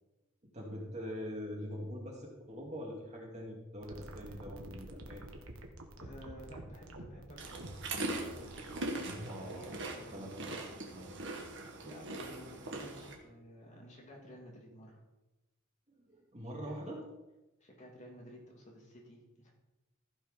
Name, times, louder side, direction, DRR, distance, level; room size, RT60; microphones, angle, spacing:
voice 1, 0.5-5.3 9.3-10.5 10.9-11.2 11.7-12.0 13.1-13.3 16.0-17.0, equal, 35° right, -1 dB, 2.5 m, -44 dB
sound 1, 3.8-9.4, right 1 dB, 80° right, 1.4 m, -48 dB
voice 2, 6.0-7.7 8.1-11.1 11.8-15.0 16.6-16.8 17.6-19.5, equal, 35° left, -2 dB, 2.8 m, -53 dB
sound 2, 7.4-13.1, right 2 dB, 60° right, 1.8 m, -41 dB
15.0 x 5.4 x 5.2 m, 1.0 s
head